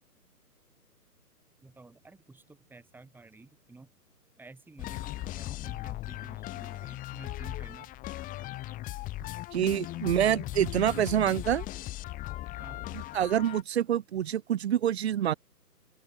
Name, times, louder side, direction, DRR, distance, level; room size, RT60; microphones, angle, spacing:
voice 1, 1.6-3.9 4.4-7.9 8.2-8.3 9.2-9.3 9.9-10.1 11.7-11.8 12.6-13.0, right 3 dB, 5° right, 6.5 m, -52 dB
sound 1, 4.8-13.6, left 16 dB, 15° left, 3.2 m, -38 dB
voice 2, 9.5-11.7 12.9-15.3, right 10 dB, 40° right, 1.2 m, -27 dB
figure-of-eight pair, 140°, 48 cm